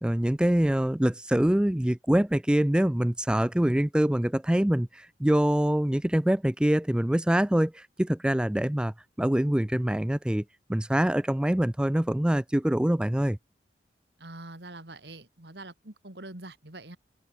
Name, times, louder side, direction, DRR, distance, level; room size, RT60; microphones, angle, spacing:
voice 1, 0.0-10.4 10.7-13.4, right 1 dB, 5° right, 0.3 m, -25 dB
voice 2, 14.2-17.0, right 2 dB, 65° right, 3.0 m, -44 dB
head